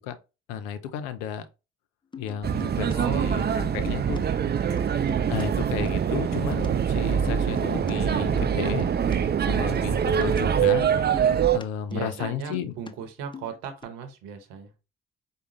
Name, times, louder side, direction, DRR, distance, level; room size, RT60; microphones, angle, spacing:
voice 1, 0.5-1.4 2.2-4.2 5.3-8.9 9.4-10.9 11.5-12.7, left 8 dB, 80° left, 0.6 m, -33 dB
sound 1, 2.1-3.0 3.2-4.2 4.5-6.7 7.0-9.2 9.4-12.9 13.2-13.8, left 6 dB, 15° left, 0.5 m, -42 dB
sound 2, 2.4-11.6, right 8 dB, 35° right, 0.5 m, -24 dB
voice 2, 2.9-3.8 4.2-5.9 11.9-14.7, right 7 dB, 80° right, 0.9 m, -38 dB
4.9 x 2.2 x 3.0 m
hypercardioid pair, 40°, 29 cm